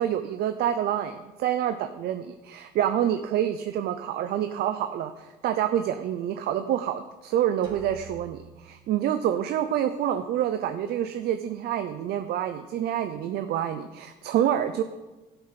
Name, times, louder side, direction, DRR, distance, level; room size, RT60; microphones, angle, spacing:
voice 1, 0.0-14.8, right 10 dB, 70° right, 9 dB, 0.7 m, -27 dB
sound 1, 7.6-9.5, right 6 dB, 25° right, 3.2 m, -49 dB
12.5 x 8.0 x 5.9 m, 1.1 s
cardioid pair, 110°, 17 cm